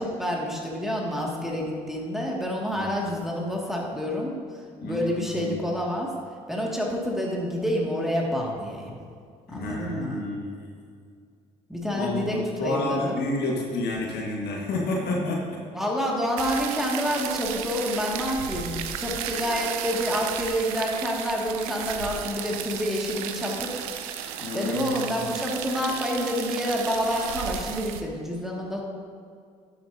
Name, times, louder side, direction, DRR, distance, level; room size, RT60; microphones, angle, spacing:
voice 1, 0.0-6.1 6.5-9.0 9.5-10.2 11.7-13.2 15.7-23.9 24.5-28.8, equal, ahead, -3 dB, 2.2 m, -28 dB
voice 2, 4.8-5.6 9.5-10.6 11.9-15.6 24.4-25.2, left 2 dB, 65° left, -2 dB, 1.8 m, -30 dB
sound 1, 16.4-28.0, right 9 dB, 85° right, 0.6 m, -34 dB
11.0 x 8.3 x 2.8 m, 2.2 s
hypercardioid pair, 55°, 18 cm